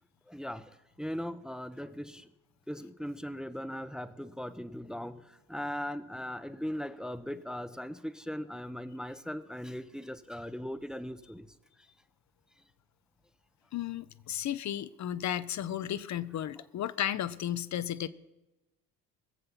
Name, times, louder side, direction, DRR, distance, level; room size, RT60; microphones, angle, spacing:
voice 1, 0.3-2.3 2.7-11.5, equal, ahead, 0.7 m, -39 dB
voice 2, 13.7-18.1, left 11 dB, 40° left, 0.6 m, -34 dB
21.0 x 7.8 x 5.7 m
hypercardioid pair, 55°, 46 cm